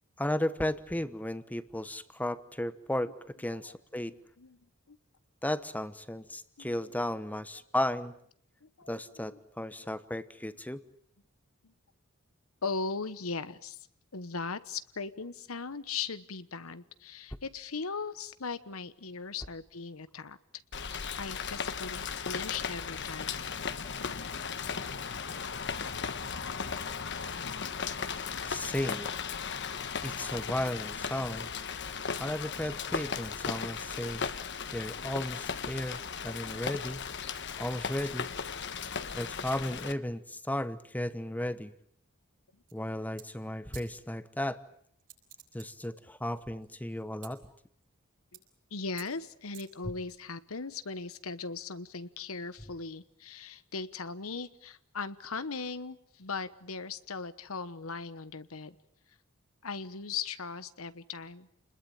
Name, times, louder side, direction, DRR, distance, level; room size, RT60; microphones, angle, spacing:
voice 1, 0.2-4.1 5.4-8.1 8.9-10.8 28.5-29.1 30.0-31.5 32.2-34.3 34.7-37.0 37.6-38.3 39.1-41.7 42.7-44.6 45.5-47.5, left 1 dB, 5° left, 13 dB, 1.1 m, -34 dB
voice 2, 4.0-4.6 4.9-5.0 6.6-6.9 8.6-8.9 9.3-9.4 9.8-9.9 12.6-13.8 14.1-20.4 21.2-23.4 48.7-58.8 59.6-61.5, left 4 dB, 80° left, 13 dB, 1.2 m, -39 dB
Rain, 20.7-39.9, left 6 dB, 55° left, 1.3 m, -36 dB
sound 1, 42.7-42.9 43.2-43.3 43.7-43.9 45.0-45.9 46.3-47.3 47.8-48.0 48.3-48.6 49.0-49.1 49.5-50.1, right 13 dB, 60° right, 6.7 m, -51 dB
29.5 x 21.0 x 8.8 m, 0.67 s
head